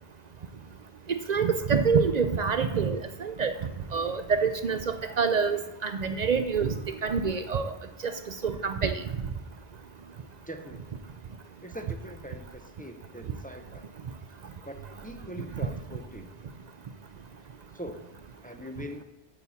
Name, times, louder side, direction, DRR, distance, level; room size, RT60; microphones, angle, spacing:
voice 1, 1.1-3.5 3.9-6.7 7.0-7.7 8.0-8.1 8.4-9.0, right 5 dB, 55° right, 9 dB, 0.5 m, -26 dB
voice 2, 10.5-10.8 11.6-13.9 14.7-14.8 15.0-16.3 17.7-18.1 18.4-19.0, equal, 10° left, 5 dB, 0.4 m, -42 dB
8.9 x 4.2 x 7.0 m, 1.0 s
omnidirectional pair, 1.1 m